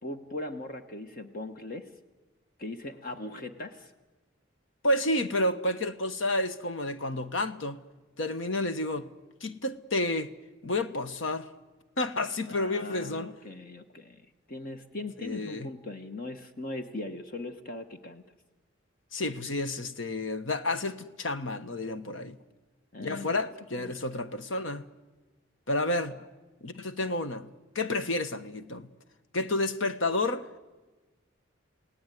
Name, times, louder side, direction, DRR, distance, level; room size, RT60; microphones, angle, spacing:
voice 1, 0.0-1.9 2.6-3.9 12.4-18.2 22.9-23.5 23.8-24.0 26.1-26.2, left 2 dB, 45° left, 1.2 m, -39 dB
voice 2, 4.8-7.8 8.2-9.1 9.4-10.3 10.6-11.5 12.0-13.3 15.2-15.7 19.1-22.4 23.0-24.8 25.7-26.2 26.6-27.5 27.7-28.9 29.3-30.6, left 2 dB, 75° left, 1.2 m, -30 dB
28.5 x 17.5 x 9.3 m
head